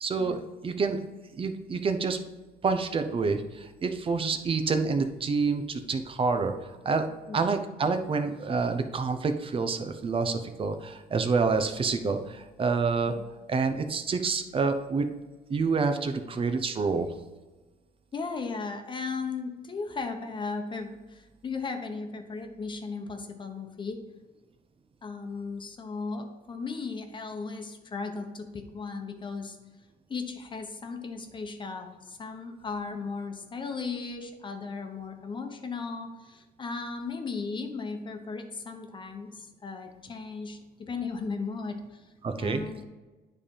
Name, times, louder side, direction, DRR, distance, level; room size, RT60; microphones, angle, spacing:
voice 1, 0.0-1.0 1.4-2.2 2.6-6.5 6.8-7.1 7.3-13.1 13.5-15.1 15.5-17.1 42.2-42.6, right 4 dB, 30° right, 7 dB, 0.8 m, -27 dB
voice 2, 18.1-24.0 25.0-29.6 30.1-42.1 42.4-42.8, left 4 dB, 30° left, 5 dB, 1.0 m, -36 dB
9.8 x 3.5 x 5.5 m, 1.2 s
cardioid pair, 110°, 17 cm